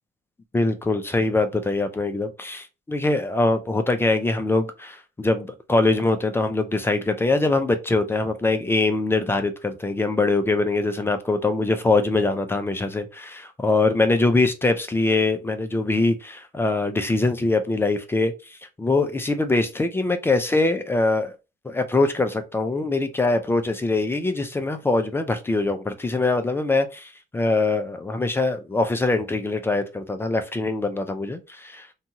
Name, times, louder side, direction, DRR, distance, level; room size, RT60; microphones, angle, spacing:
voice 1, 0.5-21.3 21.6-31.9, left 2 dB, 15° left, 0.4 m, -23 dB
2.7 x 2.3 x 2.8 m
cardioid pair, 110°, 17 cm